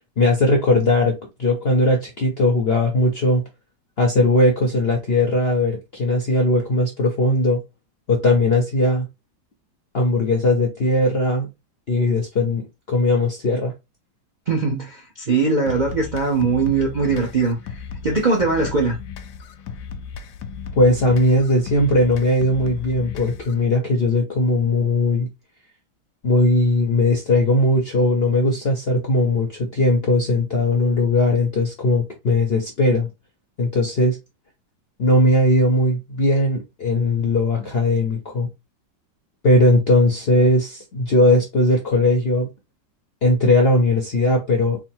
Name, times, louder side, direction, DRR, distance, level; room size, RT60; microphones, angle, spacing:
voice 1, 0.2-3.4 4.0-7.6 8.1-9.1 9.9-11.5 11.9-13.7 20.8-25.3 26.2-33.1 33.6-34.2 35.0-38.5 39.4-42.5 43.2-44.8, left 2 dB, 55° left, 0.6 m, -19 dB
voice 2, 14.5-19.0, right 4 dB, 55° right, 0.5 m, -21 dB
sound 1, 15.7-23.7, left 6 dB, 75° left, 1.1 m, -36 dB
3.7 x 2.1 x 4.4 m
omnidirectional pair, 1.9 m